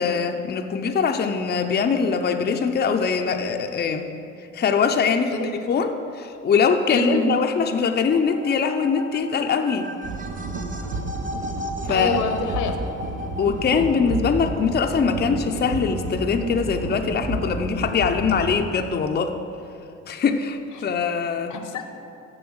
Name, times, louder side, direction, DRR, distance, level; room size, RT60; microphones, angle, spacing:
voice 1, 0.0-4.1 4.5-5.3 5.7-9.9 11.9-12.2 13.4-19.4 20.1-21.6, left 5 dB, 35° left, 5 dB, 0.5 m, -22 dB
voice 2, 6.9-7.3 11.9-12.8 21.5-21.9, left 3 dB, 80° left, 7 dB, 0.9 m, -26 dB
sound 1, 7.5-18.5, left 2 dB, 25° right, 0.8 m, -38 dB
sound 2, 10.0-18.6, right 2 dB, 75° right, 1.0 m, -31 dB
7.0 x 6.9 x 6.4 m, 2.7 s
cardioid pair, 90°, 30 cm